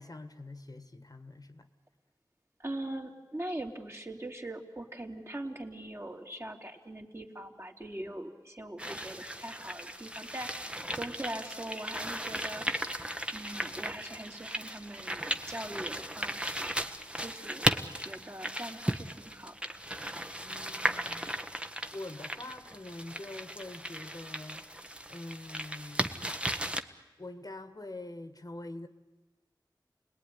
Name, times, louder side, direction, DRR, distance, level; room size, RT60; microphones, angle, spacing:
voice 1, 0.0-1.7 20.4-21.3 21.9-24.6 25.1-26.3 27.2-28.9, left 2 dB, 50° left, 9 dB, 1.6 m, -45 dB
voice 2, 2.6-12.7 13.3-16.7 17.2-19.6, right 1 dB, 35° right, 1 dB, 3.1 m, -42 dB
sound 1, 8.8-26.8, right 1 dB, 15° right, 1.2 m, -36 dB
29.0 x 20.0 x 9.9 m, 1.2 s
wide cardioid pair, 50°, 8 cm